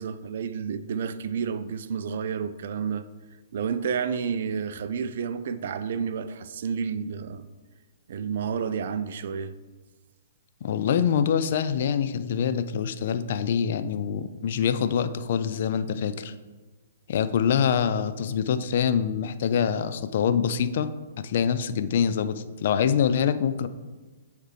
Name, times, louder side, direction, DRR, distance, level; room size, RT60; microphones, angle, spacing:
voice 1, 0.0-3.0 3.5-7.5 8.1-9.5, right 6 dB, 50° right, 0.3 m, -30 dB
voice 2, 10.6-16.3 17.1-20.9 21.2-23.7, left 7 dB, 50° left, 0.3 m, -25 dB
9.5 x 3.3 x 3.2 m
figure-of-eight pair, 115°, 0 cm